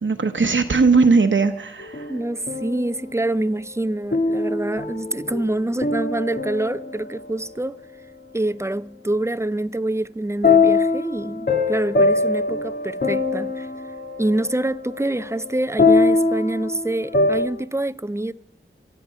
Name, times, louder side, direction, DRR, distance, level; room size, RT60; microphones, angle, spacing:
voice 1, 0.0-2.1, right 4 dB, 65° right, 0.9 m, -18 dB
sound 1, 1.8-3.0 4.1-7.3 10.4-17.5, left 3 dB, 50° left, 1.8 m, -22 dB
voice 2, 2.1-7.8 8.3-13.7 14.2-18.3, right 1 dB, 15° right, 0.4 m, -26 dB
23.5 x 8.3 x 5.6 m
wide cardioid pair, 45°, 21 cm